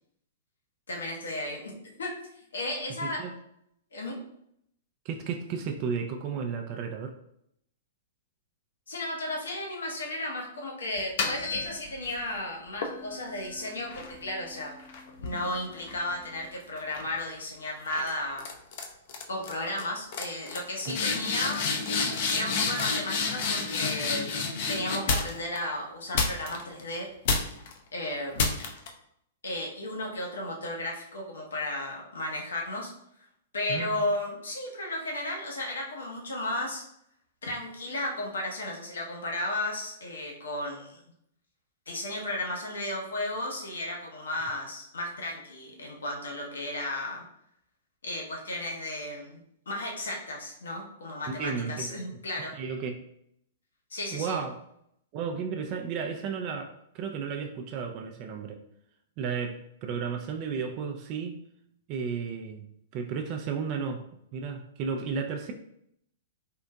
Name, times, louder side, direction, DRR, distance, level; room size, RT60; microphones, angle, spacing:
voice 1, 0.9-2.1 2.5-3.2 3.9-4.2 8.9-14.8 15.2-18.5 19.3-21.6 22.3-24.3 24.7-27.1 27.9-28.6 29.4-32.9 33.5-36.8 37.4-41.0 41.9-47.2 48.0-52.5 53.9-54.4, left 1 dB, 80° left, 0 dB, 0.8 m, -34 dB
voice 2, 3.0-3.3 5.1-7.1 20.9-21.0 33.7-34.0 51.3-52.0 52.5-53.0 54.1-54.6 55.1-58.6 59.2-61.4 61.9-64.0 64.3-65.5, right 6 dB, 40° right, 4 dB, 0.3 m, -33 dB
sound 1, 11.0-12.2 12.8-16.4 16.8-17.2 17.9-18.1 18.4-18.8 19.1-19.5 19.8-19.9 20.1-25.6 26.1-26.8 27.2-27.7 28.4-28.9, left 4 dB, 55° left, 0.5 m, -30 dB
3.6 x 2.5 x 2.2 m, 0.74 s
hypercardioid pair, 115°, 0 cm